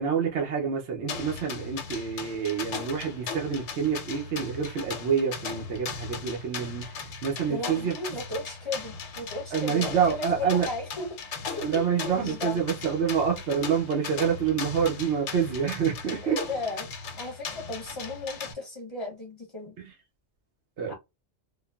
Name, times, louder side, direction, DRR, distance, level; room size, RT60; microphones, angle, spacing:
voice 1, 0.0-8.0 9.5-10.7 11.6-16.4 19.8-19.9 20.8-20.9, right 7 dB, 75° right, 1.0 m, -27 dB
sound 1, 1.1-18.5, left 5 dB, 85° left, 1.0 m, -38 dB
voice 2, 7.5-11.1 11.6-12.6 16.2-19.8 20.9-21.0, left 2 dB, 30° left, 0.7 m, -36 dB
3.5 x 2.0 x 2.3 m
omnidirectional pair, 1.2 m